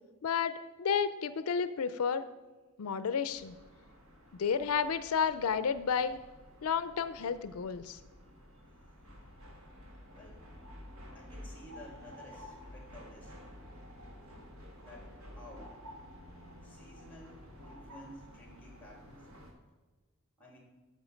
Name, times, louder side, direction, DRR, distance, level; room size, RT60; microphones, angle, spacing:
voice 1, 0.2-2.2 2.8-3.6 4.3-6.2 6.6-8.0, left 6 dB, 85° left, 13 dB, 0.4 m, -31 dB
sound 1, 3.3-19.5, equal, 70° right, 1.8 m, -51 dB
voice 2, 11.1-13.3 14.8-15.8 16.6-19.2 20.4-20.6, left 1 dB, 10° left, -1 dB, 2.7 m, -53 dB
10.5 x 6.6 x 5.1 m, 1.2 s
head